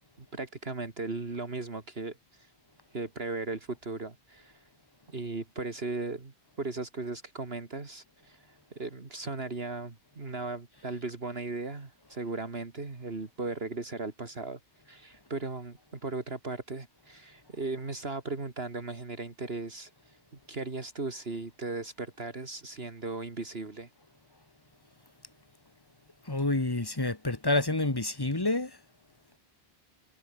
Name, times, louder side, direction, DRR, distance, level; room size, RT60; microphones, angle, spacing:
voice 1, 0.2-2.5 2.9-4.6 5.1-14.6 14.9-20.2 20.5-23.9, right 3 dB, 65° right, 2.8 m, -37 dB
voice 2, 26.3-28.7, left 2 dB, 20° left, 1.6 m, -28 dB
omnidirectional pair, 1.1 m